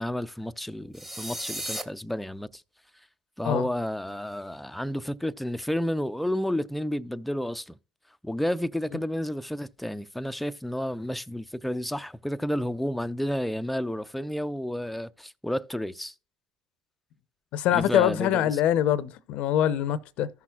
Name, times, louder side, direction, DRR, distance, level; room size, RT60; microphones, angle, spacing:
voice 1, 0.0-2.6 3.4-7.8 8.2-16.1 17.7-18.6, left 1 dB, 5° left, 0.5 m, -31 dB
sound 1, 0.9-1.8, right 1 dB, 15° right, 1.2 m, -34 dB
voice 2, 17.5-20.3, left 11 dB, 70° left, 0.6 m, -24 dB
14.5 x 5.9 x 2.4 m
supercardioid pair, 75°, 2 cm